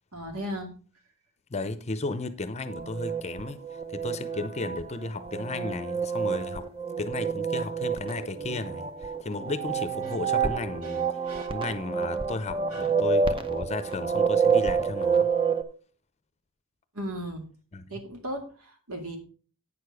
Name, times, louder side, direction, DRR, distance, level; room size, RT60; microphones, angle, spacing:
voice 1, 0.1-0.7 10.8-11.0 11.3-11.5 12.7-12.8 16.9-17.4 17.9-19.2, equal, 80° right, 2.3 m, -36 dB
voice 2, 1.5-6.7 7.0-15.3 17.7-18.1, left 3 dB, 30° left, 0.6 m, -34 dB
sound 1, 2.7-15.6, right 5 dB, 25° right, 0.7 m, -28 dB
8.8 x 6.7 x 4.8 m
head